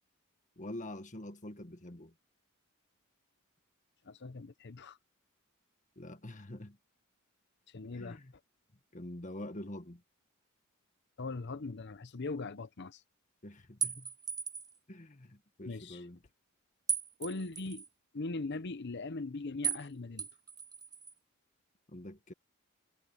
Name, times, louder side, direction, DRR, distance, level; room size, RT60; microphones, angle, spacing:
voice 1, 0.6-2.1 5.9-6.8 7.7-8.3 8.9-10.0 13.4-14.1 14.9-16.2 21.9-22.3, left 1 dB, 35° left, 1.7 m, -46 dB
voice 2, 4.0-5.0 7.7-8.2 11.2-13.0 15.7-16.0 17.2-17.8 18.1-20.3, left 3 dB, 55° left, 0.8 m, -40 dB
sound 1, 13.8-14.8 16.9-17.9 19.6-19.9 20.2-21.1, right 7 dB, 20° right, 0.7 m, -36 dB
head